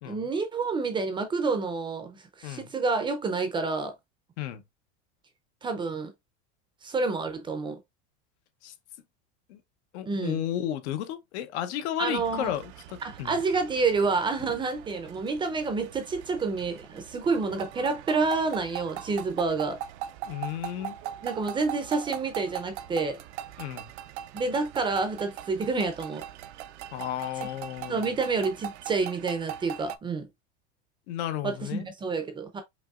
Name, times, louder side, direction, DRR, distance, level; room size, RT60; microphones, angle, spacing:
voice 1, 0.1-3.9 5.6-6.1 6.8-7.8 10.1-10.4 12.0-12.5 13.0-19.8 21.2-23.2 24.3-26.2 27.9-30.3 31.4-32.6, right 4 dB, 15° right, 0.5 m, -28 dB
voice 2, 9.9-13.4 20.3-21.0 23.6-23.9 26.9-28.2 31.1-31.9, left 11 dB, 75° left, 0.9 m, -33 dB
sound 1, 12.2-30.0, right 11 dB, 85° right, 0.6 m, -41 dB
5.4 x 2.9 x 2.3 m
supercardioid pair, 155°, 34 cm